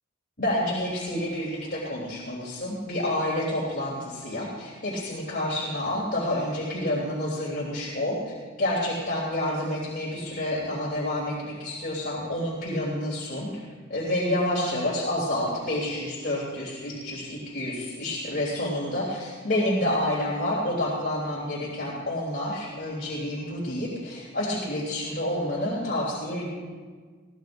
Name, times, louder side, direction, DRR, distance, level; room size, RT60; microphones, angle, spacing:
voice 1, 0.4-13.5 13.9-26.5, left 1 dB, 45° left, -6 dB, 3.4 m, -29 dB
22.5 x 16.5 x 2.7 m, 1.5 s
head